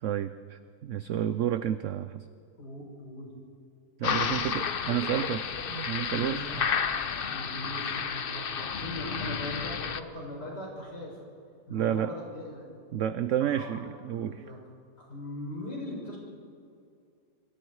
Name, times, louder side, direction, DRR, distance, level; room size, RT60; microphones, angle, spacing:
voice 1, 0.0-2.3 4.0-5.4 5.7-6.4 11.7-12.1 12.9-14.5, right 10 dB, 60° right, 12 dB, 0.9 m, -30 dB
voice 2, 2.6-3.3 4.1-4.5 5.0-5.2 5.5-5.7 6.1-6.8 7.3-11.2 11.7-12.7 13.5-13.8 14.1-14.6 15.0-16.2, left 1 dB, 85° left, -2 dB, 7.0 m, -40 dB
sound 1, 4.0-10.0, left 6 dB, 45° left, 0.8 m, -31 dB
27.5 x 24.0 x 4.8 m, 2.4 s
omnidirectional pair, 1.7 m